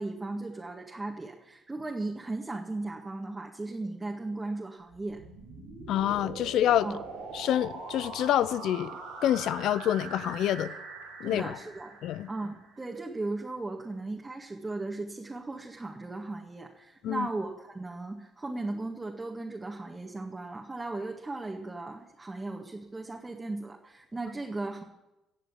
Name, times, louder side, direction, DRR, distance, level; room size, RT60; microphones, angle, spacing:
voice 1, 0.0-5.2 6.8-7.0 11.2-12.0 12.3-24.8, right 2 dB, 20° right, 1.8 m, -37 dB
sound 1, 4.9-12.8, right 4 dB, 90° right, 4.2 m, -43 dB
voice 2, 5.9-6.9 7.3-10.7 11.2-11.6 12.0-12.3 17.0-17.3, left 11 dB, 70° left, 0.6 m, -27 dB
17.5 x 7.2 x 8.5 m
hypercardioid pair, 60°, 0 cm